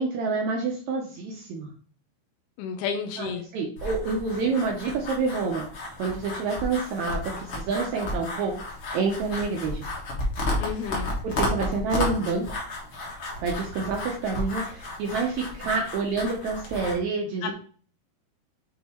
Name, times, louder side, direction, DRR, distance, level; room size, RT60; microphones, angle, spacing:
voice 1, 0.0-1.7 3.2-5.7 6.0-8.6 8.9-9.9 11.2-12.4 13.4-17.5, right 4 dB, 80° right, 1 dB, 1.7 m, -28 dB
voice 2, 2.6-3.4 10.6-11.1 17.4-17.5, left 6 dB, 85° left, 5 dB, 2.6 m, -31 dB
sound 1, 3.8-17.0, left 1 dB, 55° left, 1.5 m, -33 dB
7.9 x 2.9 x 4.3 m, 0.44 s
omnidirectional pair, 4.4 m